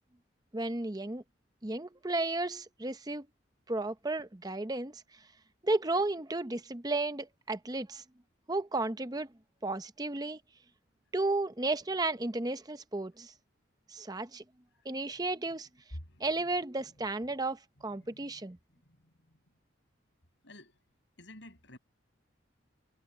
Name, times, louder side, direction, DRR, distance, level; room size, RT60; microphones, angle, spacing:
voice 1, 0.5-1.2 1.6-3.3 3.7-5.0 5.6-8.0 8.5-9.3 9.6-10.4 11.1-13.3 13.9-14.4 14.9-15.7 16.2-18.6, right 2 dB, 20° right, 0.7 m, -33 dB
voice 2, 15.9-16.3 18.0-18.4 18.8-19.0 19.3-19.4 20.4-20.8 21.2-21.8, left 1 dB, 65° left, 6.9 m, -49 dB
head